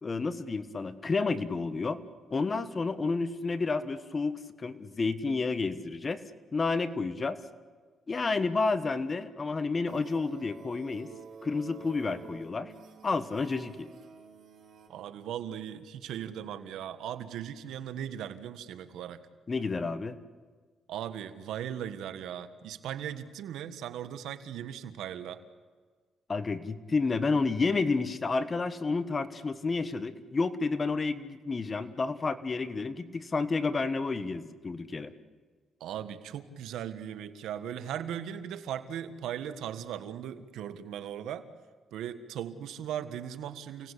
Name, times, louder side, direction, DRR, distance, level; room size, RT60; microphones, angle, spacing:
voice 1, 0.0-2.0 2.3-6.2 6.5-7.4 8.1-11.1 11.4-12.7 13.0-13.9 19.5-20.2 26.3-35.1, left 4 dB, 30° left, 12 dB, 1.5 m, -30 dB
sound 1, 9.9-14.9, right 5 dB, 60° right, 5.6 m, -50 dB
voice 2, 14.9-19.2 20.9-25.4 35.8-41.5 41.9-43.9, right 10 dB, 80° right, 11 dB, 1.5 m, -38 dB
29.5 x 18.5 x 8.4 m, 1.5 s
cardioid pair, 90°, 0 cm